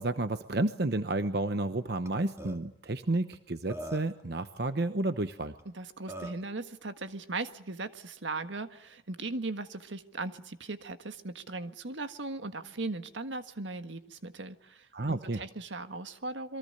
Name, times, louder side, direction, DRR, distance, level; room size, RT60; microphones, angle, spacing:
voice 1, 0.0-5.5 14.9-15.4, right 2 dB, 60° right, 10 dB, 1.0 m, -31 dB
Burping eructation, 2.0-2.1 2.4-2.6 3.3-3.4 3.7-4.2 5.6-5.7 6.1-6.4, right 1 dB, 15° right, 2.4 m, -41 dB
voice 2, 5.6-16.6, right 3 dB, 80° right, 9 dB, 1.6 m, -38 dB
28.5 x 23.0 x 6.7 m, 0.78 s
head